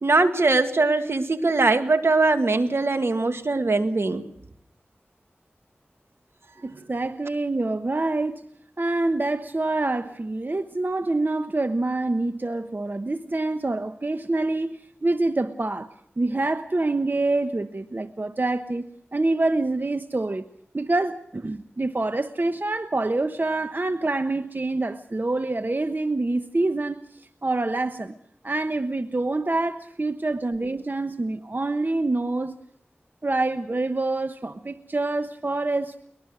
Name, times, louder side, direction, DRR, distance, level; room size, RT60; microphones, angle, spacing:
voice 1, 0.0-4.2, right 3 dB, 70° right, 9 dB, 2.0 m, -21 dB
voice 2, 6.6-8.4 8.8-15.9 16.2-20.5 20.7-28.2 28.4-32.5 33.2-36.0, right 2 dB, 45° right, 10 dB, 1.1 m, -26 dB
23.0 x 20.5 x 6.2 m, 0.72 s
cardioid pair, 40°, 4 cm